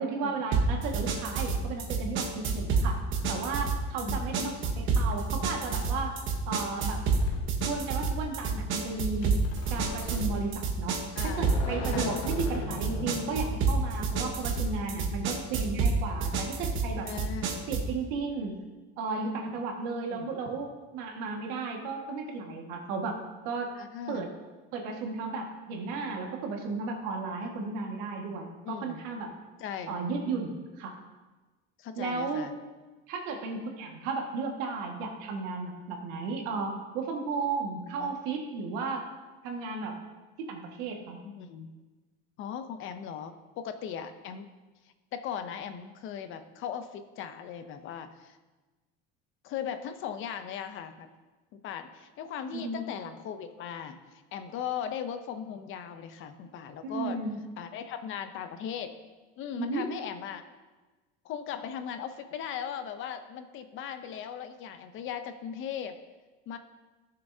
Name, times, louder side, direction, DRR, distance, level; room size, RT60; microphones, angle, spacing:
voice 1, 0.0-6.1 6.5-7.0 7.7-9.4 9.7-17.1 17.7-18.6 19.0-23.7 24.1-24.3 24.7-29.3 29.9-31.0 32.0-32.5 33.1-39.1 39.4-39.9 40.4-41.2 52.5-52.8 56.8-57.4 59.6-59.9, right 4 dB, 80° right, 2 dB, 1.7 m, -34 dB
sound 1, 0.5-18.0, right 4 dB, 45° right, 1.1 m, -29 dB
voice 2, 4.0-4.8 11.1-11.5 11.9-12.2 17.1-17.7 20.1-20.3 23.7-24.3 28.6-29.0 29.6-30.0 31.8-32.5 38.0-38.2 41.2-41.7 42.4-44.5 45.1-48.4 49.4-51.1 51.5-57.2 57.6-58.9 59.4-60.4 61.2-66.0 66.5-66.6, left 8 dB, 45° left, 9 dB, 0.6 m, -38 dB
sound 2, 7.1-14.7, left 5 dB, 60° left, 1.4 m, -40 dB
15.5 x 6.7 x 2.7 m, 1.2 s
cardioid pair, 160°, 29 cm